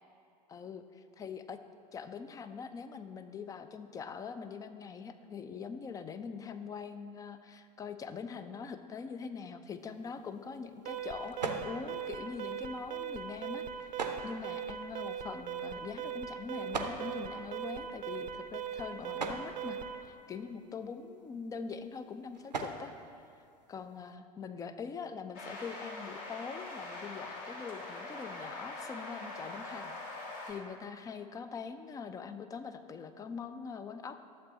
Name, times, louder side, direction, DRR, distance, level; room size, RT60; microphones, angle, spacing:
voice 1, 0.5-1.6 1.9-22.9 23.7-29.9 30.2-34.2, left 5 dB, 15° left, 10 dB, 0.3 m, -43 dB
sound 1, 9.8-24.1, right 3 dB, 85° right, 0.6 m, -45 dB
Alarm, 10.9-20.1, right 8 dB, 35° right, 0.6 m, -40 dB
sound 2, 25.3-30.5, left 2 dB, 45° left, 1.6 m, -43 dB
11.5 x 7.5 x 2.8 m, 2.5 s
figure-of-eight pair, 80°, 21 cm